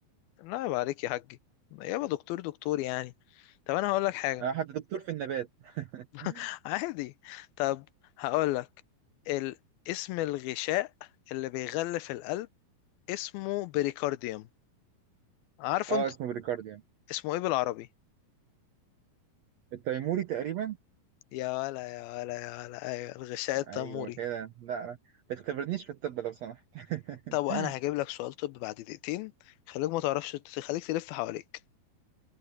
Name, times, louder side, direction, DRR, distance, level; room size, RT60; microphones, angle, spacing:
voice 1, 0.4-1.2 1.7-3.1 3.7-4.4 6.1-7.9 8.2-8.7 9.3-9.6 9.9-10.9 11.3-12.5 13.1-14.5 15.6-16.0 17.1-17.9 21.3-24.2 27.3-29.3 29.7-31.4, left 16 dB, 85° left, 2.5 m, -32 dB
voice 2, 4.4-6.4 15.9-16.8 19.7-20.8 23.7-25.0 25.3-27.7, right 9 dB, 75° right, 1.6 m, -35 dB
omnidirectional pair, 4.4 m